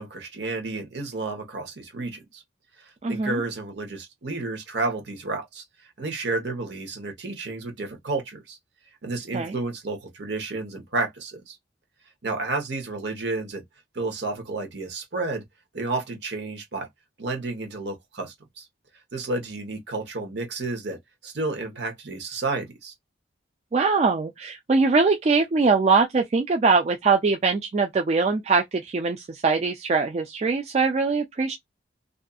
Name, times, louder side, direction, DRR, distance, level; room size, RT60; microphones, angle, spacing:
voice 1, 0.0-2.4 2.8-5.6 6.0-8.6 9.0-11.6 12.2-13.6 13.9-15.4 15.7-16.9 17.2-18.7 19.1-21.0 21.2-22.9, right 3 dB, 65° right, 0.9 m, -31 dB
voice 2, 3.0-3.4 9.3-9.6 23.7-31.5, right 4 dB, 35° right, 0.3 m, -22 dB
2.5 x 2.4 x 2.3 m
head